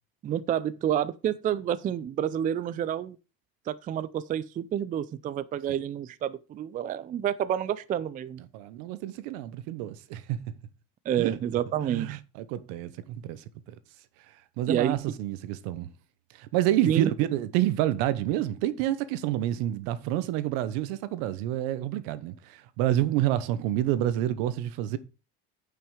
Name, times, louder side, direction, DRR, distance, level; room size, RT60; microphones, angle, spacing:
voice 1, 0.2-3.2 3.7-8.4 11.1-12.2 14.7-15.0 16.9-17.1, right 10 dB, 25° right, 0.4 m, -29 dB
voice 2, 8.5-10.4 11.2-11.4 11.9-13.4 14.6-15.9 16.4-25.0, right 13 dB, 75° right, 1.1 m, -28 dB
9.1 x 5.8 x 4.8 m
cardioid pair, 135°, 35 cm